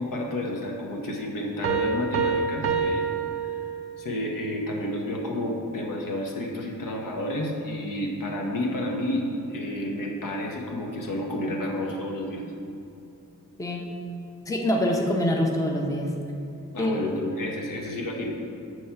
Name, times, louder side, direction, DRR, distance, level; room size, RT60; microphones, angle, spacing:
voice 1, 0.0-3.1 3.3-3.5 4.0-12.4 16.7-18.3, left 1 dB, 85° left, 0 dB, 1.0 m, -30 dB
sound 1, 1.6-4.1, right 5 dB, 45° right, 0.4 m, -27 dB
voice 2, 14.5-16.1 16.8-17.0, left 1 dB, 10° left, 1 dB, 0.5 m, -25 dB
7.2 x 3.1 x 5.6 m, 2.7 s
wide cardioid pair, 155°, 32 cm